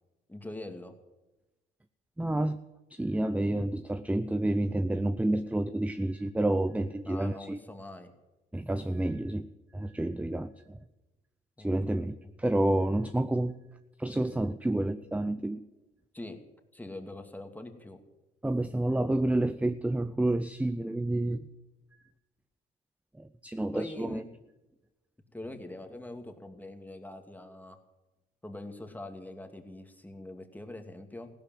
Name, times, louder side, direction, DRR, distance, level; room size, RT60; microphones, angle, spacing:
voice 1, 0.3-0.9 7.0-8.1 11.6-12.0 16.1-16.4 16.7-18.0 23.7-24.3 25.3-27.8 28.4-31.3, left 2 dB, 10° left, 5 dB, 2.5 m, -43 dB
voice 2, 2.2-2.6 2.9-7.6 8.5-9.5 9.7-10.8 11.6-13.5 14.0-15.6 18.4-21.4 23.2-24.2, right 1 dB, 5° right, 12 dB, 0.7 m, -29 dB
16.0 x 12.0 x 7.6 m, 1.0 s
cardioid pair, 90°, 20 cm